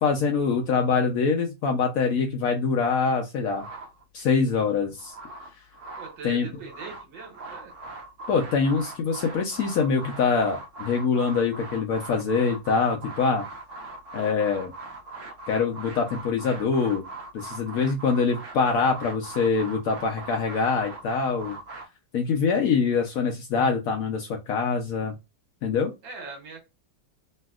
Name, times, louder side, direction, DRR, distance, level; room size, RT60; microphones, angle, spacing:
voice 1, 0.0-3.6 4.1-5.1 6.2-6.5 8.3-13.4 14.1-14.7 15.5-17.0 17.3-21.6 22.1-25.1 25.6-25.9, left 5 dB, 85° left, 0.7 m, -24 dB
sound 1, 3.5-4.3 4.8-6.2 6.5-21.8, right 2 dB, 60° right, 0.8 m, -41 dB
voice 2, 5.9-7.7 26.0-26.6, right 4 dB, 75° right, 1.7 m, -41 dB
3.2 x 2.7 x 2.3 m
omnidirectional pair, 2.1 m